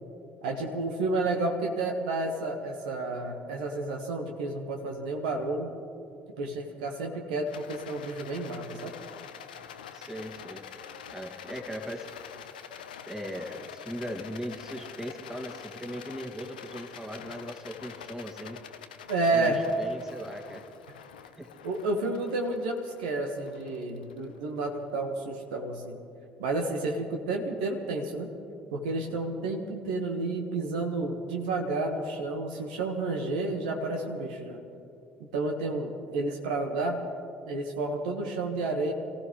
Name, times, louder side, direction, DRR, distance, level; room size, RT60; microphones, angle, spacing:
voice 1, 0.4-5.7 6.4-8.9 19.1-19.6 21.6-26.0 26.4-28.3 28.7-34.6 35.3-37.0 37.5-38.9, right 2 dB, 70° right, 2 dB, 1.5 m, -31 dB
Rattle, 7.5-24.8, left 8 dB, 80° left, 0.7 m, -46 dB
voice 2, 9.9-10.7 11.1-12.2 13.1-18.6 19.3-20.6 21.4-21.5, equal, 10° right, 2 dB, 2.0 m, -39 dB
26.5 x 15.5 x 3.2 m, 2.5 s
figure-of-eight pair, 55°, 5 cm